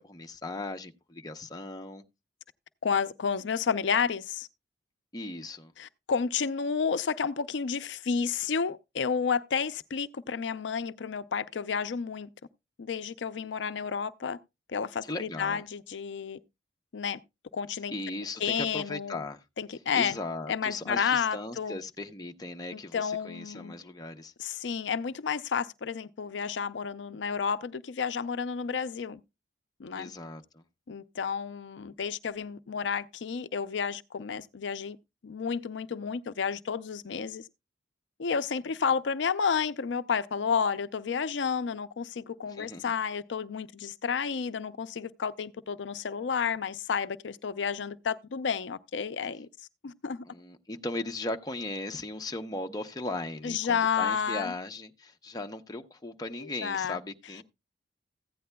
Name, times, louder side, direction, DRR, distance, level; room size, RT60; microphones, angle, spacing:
voice 1, 0.0-2.0 5.1-5.7 13.4-13.8 15.1-15.6 17.9-19.4 19.9-24.3 29.9-30.6 42.6-42.9 50.3-57.4, left 2 dB, 20° left, 0.7 m, -38 dB
voice 2, 2.8-4.5 5.8-12.3 12.8-14.4 14.7-16.4 16.9-17.2 17.5-17.9 18.4-19.2 19.6-20.2 20.5-21.8 22.7-23.7 24.4-29.2 29.8-30.1 30.9-35.0 35.2-37.4 38.2-49.5 49.8-50.2 53.4-54.5 56.4-57.0, left 6 dB, 85° left, 0.5 m, -31 dB
15.0 x 9.3 x 2.2 m
head